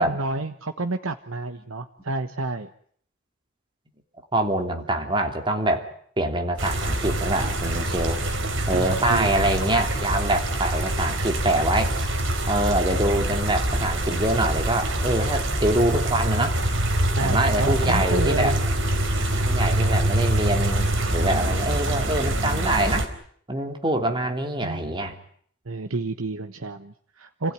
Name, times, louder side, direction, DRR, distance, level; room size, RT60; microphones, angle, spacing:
voice 1, 0.0-2.7 8.7-9.5 13.0-13.6 17.2-18.6 24.5-24.8 25.6-27.5, right 2 dB, 90° right, 7 dB, 1.2 m, -30 dB
voice 2, 4.3-5.9 6.2-8.2 8.7-11.9 12.5-16.6 17.2-18.5 19.3-23.1 23.5-25.1, right 1 dB, 25° right, 4 dB, 3.0 m, -25 dB
sound 1, 6.6-23.1, right 1 dB, 70° right, 4.1 m, -25 dB
29.5 x 16.5 x 9.5 m, 0.63 s
head